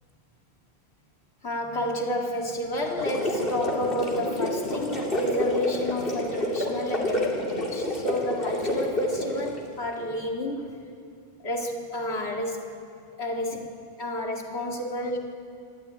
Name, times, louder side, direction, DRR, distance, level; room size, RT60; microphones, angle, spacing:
voice 1, 1.4-10.8 11.4-12.6 13.2-15.2, left 1 dB, 85° left, 1 dB, 2.4 m, -31 dB
sound 1, 2.8-9.6, left 1 dB, 60° left, 3.1 m, -28 dB
24.0 x 13.0 x 9.2 m, 2.5 s
omnidirectional pair, 1.1 m